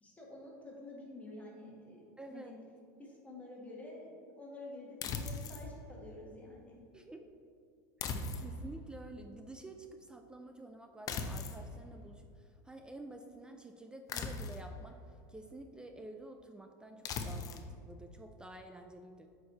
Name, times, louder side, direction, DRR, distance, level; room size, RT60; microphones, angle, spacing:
voice 1, 0.0-2.5 3.0-6.8, left 2 dB, 15° left, -3 dB, 1.8 m, -49 dB
voice 2, 2.2-2.5 6.9-7.3 8.0-15.0 15.3-19.3, right 2 dB, 10° right, 5 dB, 0.4 m, -50 dB
sound 1, 5.0-5.7 8.0-8.8 11.1-11.6 14.1-14.7 17.0-17.7, left 4 dB, 40° left, 0.7 m, -38 dB
8.1 x 4.7 x 4.0 m, 2.3 s
supercardioid pair, 115°, 10 cm